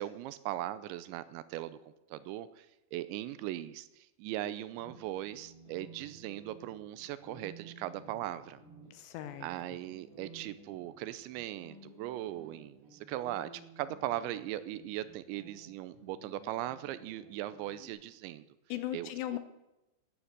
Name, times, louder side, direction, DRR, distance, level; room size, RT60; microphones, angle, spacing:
voice 1, 0.0-1.8 2.1-2.7 2.9-8.6 9.4-18.5 18.9-19.1, right 14 dB, 80° right, 14 dB, 2.8 m, -39 dB
sound 1, 4.7-17.9, right 3 dB, 60° right, 6.7 m, -55 dB
voice 2, 8.9-9.5 18.7-19.4, left 13 dB, 80° left, 11 dB, 2.7 m, -37 dB
15.5 x 9.9 x 6.5 m, 0.99 s
omnidirectional pair, 5.4 m